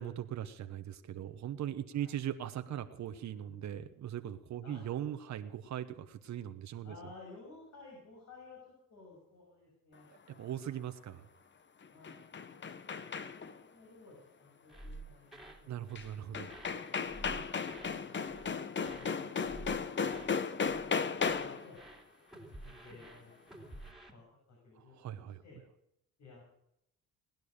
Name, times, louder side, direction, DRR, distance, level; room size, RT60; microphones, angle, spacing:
voice 1, 0.0-6.9 10.4-11.3 15.7-16.5 24.8-25.4, right 10 dB, 65° right, 8 dB, 1.1 m, -40 dB
voice 2, 6.8-10.8 11.9-12.3 12.9-16.4 17.6-22.1 22.6-23.3 23.8-25.6 26.2-26.4, left 3 dB, 65° left, -2 dB, 7.0 m, -56 dB
sound 1, 11.8-13.6 16.0-16.1 16.3-21.7, left 5 dB, 40° left, 1.1 m, -35 dB
sound 2, 14.7-15.6 15.9-16.2 16.5-18.0 18.2-18.5 18.8-20.3 20.6-20.9 21.2-24.1, right 2 dB, ahead, 2.9 m, -51 dB
19.0 x 10.5 x 6.7 m, 0.79 s
cardioid pair, 90°, 30 cm